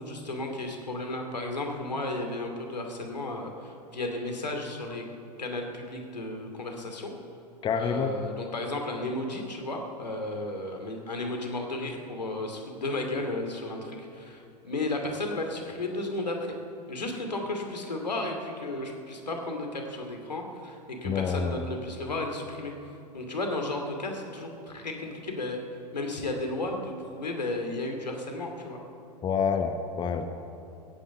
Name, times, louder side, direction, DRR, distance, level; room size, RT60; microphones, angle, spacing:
voice 1, 0.0-5.0 5.4-7.1 7.8-16.6 16.9-22.7 23.1-28.8, left 2 dB, 80° left, 3 dB, 2.4 m, -34 dB
voice 2, 7.6-8.1 21.0-21.7 29.2-30.3, left 6 dB, 20° left, 7 dB, 0.9 m, -27 dB
15.5 x 9.5 x 8.3 m, 2.7 s
figure-of-eight pair, 95°, 21 cm